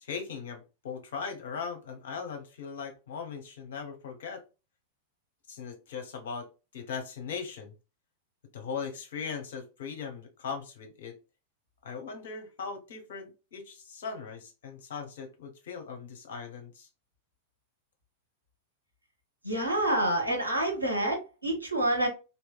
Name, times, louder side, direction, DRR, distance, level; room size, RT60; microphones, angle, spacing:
voice 1, 0.0-4.4 5.5-6.5 6.7-7.7 8.5-11.1 11.8-16.9, left 6 dB, 60° left, 4 dB, 1.0 m, -39 dB
voice 2, 19.4-22.1, right 1 dB, 85° right, 1 dB, 1.1 m, -27 dB
3.1 x 2.7 x 2.4 m, 0.29 s
figure-of-eight pair, 90°, 0 cm